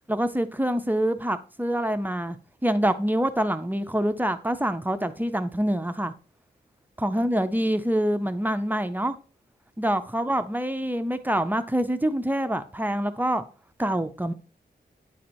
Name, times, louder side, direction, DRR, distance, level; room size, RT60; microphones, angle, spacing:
voice 1, 0.1-2.4 2.6-6.1 7.0-9.2 9.8-13.4 13.8-14.3, right 1 dB, 10° right, 0.4 m, -26 dB
9.3 x 4.3 x 2.6 m
wide cardioid pair, 150°, 18 cm